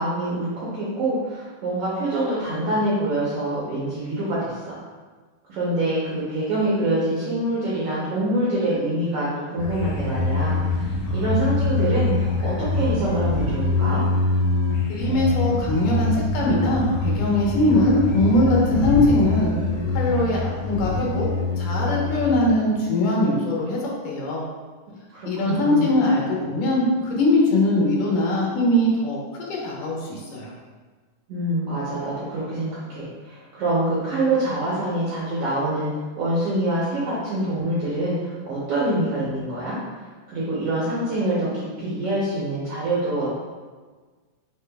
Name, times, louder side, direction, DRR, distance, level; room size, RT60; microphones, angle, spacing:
voice 1, 0.0-4.8 5.5-14.0 25.1-25.9 31.3-35.9 36.2-39.8 40.3-43.3, right 1 dB, 70° right, -8 dB, 1.4 m, -25 dB
sound 1, 9.6-22.4, left 2 dB, 70° left, 1.6 m, -24 dB
voice 2, 14.9-19.5 19.9-21.3 21.6-23.8 24.0-24.4 25.2-30.5, left 1 dB, 85° left, -3 dB, 2.6 m, -21 dB
7.1 x 3.3 x 2.3 m, 1.4 s
omnidirectional pair, 3.7 m